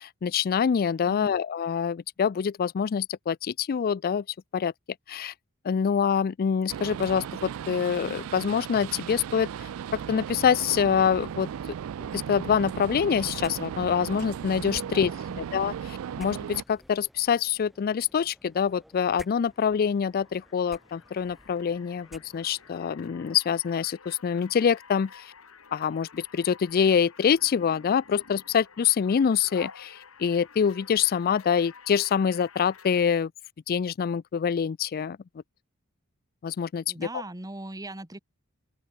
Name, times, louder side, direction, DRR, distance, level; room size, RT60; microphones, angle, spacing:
voice 1, 0.0-4.2 4.5-4.7 5.1-5.3 5.6-9.7 10.1-11.5 12.1-15.1 15.5-25.3 25.7-33.3 33.7-35.2 36.4-37.1, left 7 dB, 40° left, 0.3 m, -25 dB
voice 2, 1.0-1.3 14.8-15.5 36.9-38.2, right 2 dB, 15° right, 1.5 m, -40 dB
sound 1, 6.7-16.6, right 8 dB, 65° right, 0.3 m, -36 dB
sound 2, 13.4-22.8, equal, ahead, 6.4 m, -53 dB
sound 3, 19.4-33.1, left 5 dB, 65° left, 2.5 m, -50 dB
open air
head